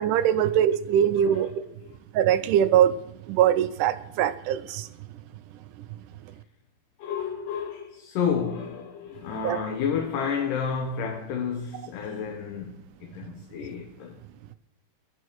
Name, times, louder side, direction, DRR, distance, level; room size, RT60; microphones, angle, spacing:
voice 1, 0.0-1.5 2.1-2.9 3.3-4.9 9.4-9.6, right 10 dB, 80° right, 2.0 m, -22 dB
voice 2, 1.2-1.5 1.8-2.0 7.0-14.2, left 6 dB, 75° left, 2.6 m, -31 dB
25.0 x 11.0 x 3.1 m
omnidirectional pair, 4.0 m